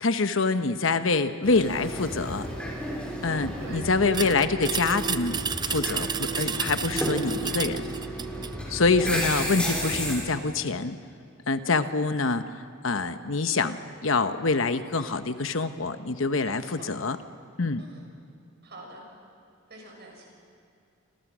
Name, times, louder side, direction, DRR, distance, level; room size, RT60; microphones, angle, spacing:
voice 1, 0.0-2.5 3.2-5.4 5.6-7.9 8.7-11.0 11.5-12.4 12.8-13.8 14.0-17.2 17.6-17.8, left 3 dB, 70° left, 10 dB, 1.0 m, -25 dB
sound 1, 1.4-10.2, right 1 dB, 5° left, 5.8 m, -32 dB
voice 2, 3.6-4.0 16.4-16.9 17.8-18.1 18.6-19.0 19.7-20.3, right 2 dB, 55° right, 0 dB, 6.6 m, -46 dB
sound 2, 4.1-8.6, right 6 dB, 20° right, 0.6 m, -31 dB
27.5 x 26.0 x 6.2 m, 2.4 s
head